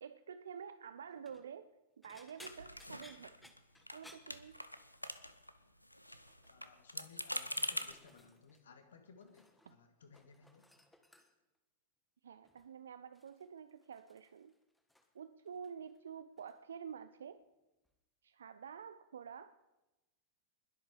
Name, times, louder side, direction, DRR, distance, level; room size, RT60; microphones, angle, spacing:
voice 1, 0.0-3.5 3.9-4.6 12.2-14.5 15.1-17.4 18.2-19.5, right 7 dB, 65° right, 12 dB, 0.5 m, -49 dB
sound 1, 1.1-1.5 2.0-5.1 5.3-5.7 6.0-6.6 7.2-8.7 8.9-9.8 10.0-11.6 12.4-12.7 13.1-15.2 15.5-16.0 16.4-16.6 17.9-18.0, left 1 dB, 5° left, 1.4 m, -62 dB
sound 2, 2.4-3.6 3.9-4.0 4.3-5.5 5.8-7.9, left 1 dB, 90° left, 0.7 m, -43 dB
voice 2, 6.5-10.7, left 5 dB, 65° left, 7 dB, 1.9 m, -60 dB
21.0 x 7.9 x 4.9 m, 1.0 s
figure-of-eight pair, 90°, 0 cm